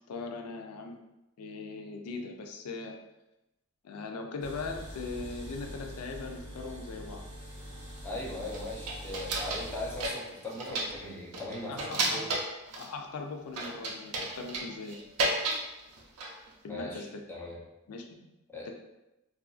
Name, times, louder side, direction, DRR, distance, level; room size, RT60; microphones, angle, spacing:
voice 1, 0.1-1.0 1.4-3.0 3.8-7.3 11.7-12.3 12.8-15.0 16.6-17.2 17.9-18.3 18.7-18.8, left 4 dB, 85° left, 4 dB, 0.4 m, -40 dB
sound 1, 4.4-10.1, equal, 20° right, 1.1 m, -44 dB
voice 2, 8.0-12.3 16.7-17.6 18.5-18.7, left 1 dB, 10° left, -4 dB, 0.5 m, -39 dB
sound 2, 8.5-9.7 10.0-11.0 11.3-12.9 13.6-15.7 16.0-16.5, right 2 dB, 90° right, 0.5 m, -33 dB
2.9 x 2.5 x 2.4 m, 0.93 s
head